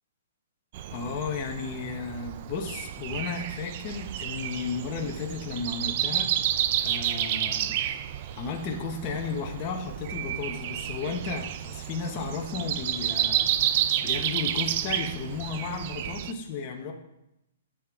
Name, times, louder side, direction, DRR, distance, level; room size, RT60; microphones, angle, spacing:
Breathing, 0.7-16.3, right 11 dB, 30° right, 0.3 m, -30 dB
voice 1, 0.9-7.8 8.3-16.9, left 5 dB, 20° left, 1 dB, 0.8 m, -34 dB
11.0 x 7.5 x 3.5 m, 0.87 s
hypercardioid pair, 175°, 0 cm